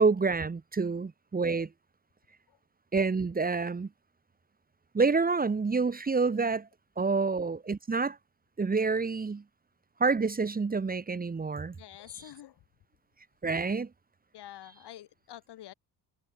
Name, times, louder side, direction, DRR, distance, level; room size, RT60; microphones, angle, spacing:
voice 1, 0.0-1.7 2.9-3.9 4.9-6.7 7.0-8.2 8.6-9.4 10.0-11.8 13.4-13.9, right 4 dB, 20° right, 1.9 m, -27 dB
voice 2, 11.7-12.6 14.3-15.7, left 12 dB, 75° left, 7.1 m, -48 dB
cardioid pair, 145°, 40 cm